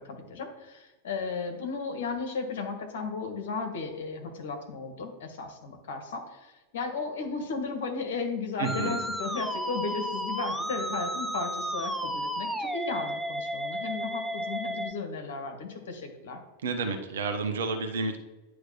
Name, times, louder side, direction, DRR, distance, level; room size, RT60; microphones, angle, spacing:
voice 1, 0.0-16.4, left 4 dB, 55° left, 4 dB, 1.6 m, -35 dB
Musical instrument, 8.6-14.9, equal, ahead, 0.5 m, -33 dB
voice 2, 8.6-9.0 16.6-18.2, right 4 dB, 60° right, 6 dB, 1.0 m, -30 dB
9.7 x 3.2 x 5.8 m, 1.1 s
figure-of-eight pair, 90°, 0 cm